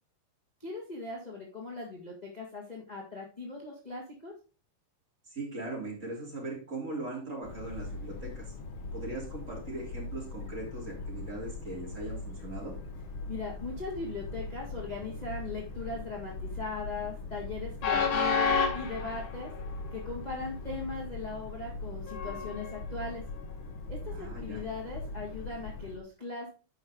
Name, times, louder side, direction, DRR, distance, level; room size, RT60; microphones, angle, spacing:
voice 1, 0.6-4.3 13.3-19.5 19.9-23.2 23.9-26.5, left 3 dB, 20° left, -3 dB, 1.1 m, -39 dB
voice 2, 5.3-8.5 8.9-12.7 24.1-24.6, right 2 dB, 25° right, -3 dB, 3.4 m, -39 dB
Train, 7.4-26.0, left 4 dB, 55° left, 2.1 m, -36 dB
11.5 x 5.5 x 3.7 m, 0.34 s
omnidirectional pair, 3.7 m